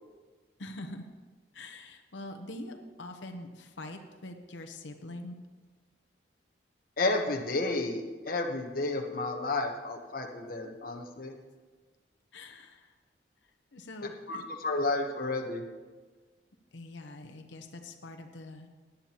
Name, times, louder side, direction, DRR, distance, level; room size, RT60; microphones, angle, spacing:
voice 1, 0.6-1.1 1.5-5.4 12.3-12.9 13.7-14.4 16.7-18.7, left 1 dB, 90° left, 4 dB, 0.9 m, -44 dB
voice 2, 7.0-8.0 8.3-11.3 14.0-15.6, left 2 dB, 50° left, 3 dB, 1.0 m, -31 dB
17.0 x 10.0 x 3.0 m, 1.4 s
head